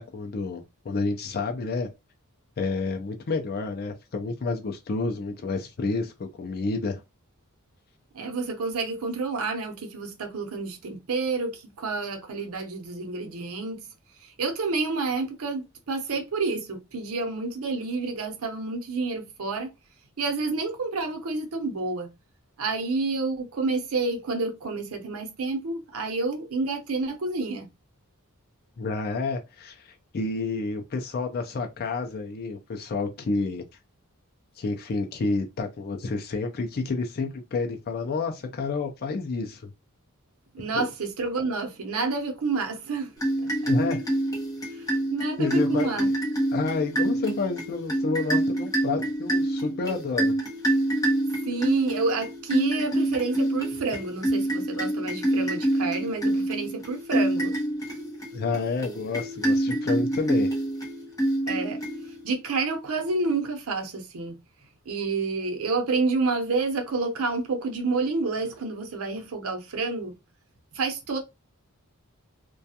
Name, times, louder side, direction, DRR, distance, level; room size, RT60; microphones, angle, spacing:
voice 1, 0.0-1.9 2.6-7.0 28.8-33.6 34.6-39.7 40.7-40.9 43.6-44.0 45.4-46.1 46.5-50.4 58.3-60.5, left 3 dB, 45° left, 0.4 m, -29 dB
voice 2, 8.1-13.9 14.2-19.7 20.2-22.1 22.6-27.7 40.5-43.1 44.7-46.1 51.4-57.5 61.5-61.8 62.2-64.4 64.9-70.1 70.7-71.2, right 3 dB, 80° right, 0.7 m, -29 dB
sound 1, 43.2-62.4, right 1 dB, 15° left, 0.8 m, -27 dB
2.3 x 2.2 x 2.7 m
head